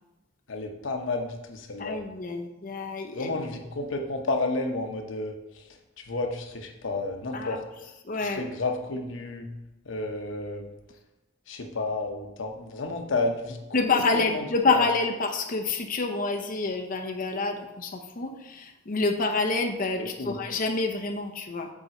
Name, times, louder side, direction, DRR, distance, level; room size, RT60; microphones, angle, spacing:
voice 1, 0.5-2.0 3.1-5.6 6.1-7.6 8.2-9.5 9.9-10.7 11.5-14.9 20.0-20.4, left 2 dB, 85° left, 4 dB, 0.9 m, -31 dB
voice 2, 1.8-3.3 7.3-7.6 8.1-8.4 13.7-21.7, left 3 dB, 45° left, 4 dB, 0.7 m, -27 dB
7.5 x 3.9 x 4.4 m, 1.0 s
head